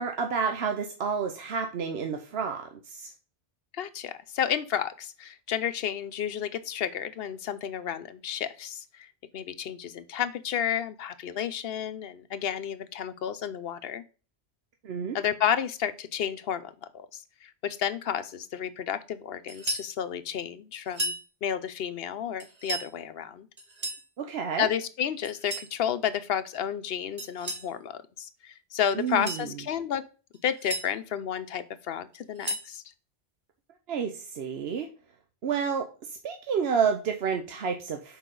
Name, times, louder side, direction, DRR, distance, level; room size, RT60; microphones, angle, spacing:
voice 1, 0.0-3.1 14.8-15.2 24.2-24.7 28.9-29.5 33.9-34.9 35.4-38.2, right 6 dB, 70° right, 4 dB, 1.0 m, -30 dB
voice 2, 3.7-14.0 15.1-21.1 21.4-23.5 24.6-30.0 30.4-32.8, left 9 dB, 70° left, 12 dB, 0.8 m, -31 dB
sound 1, 19.5-19.9 20.9-21.2 22.4-22.9 23.6-24.1 25.2-25.7 27.2-27.7 29.0-29.5 30.3-30.9 32.1-32.7, right 1 dB, 40° right, 1.4 m, -34 dB
6.5 x 4.5 x 3.8 m, 0.36 s
omnidirectional pair, 1.1 m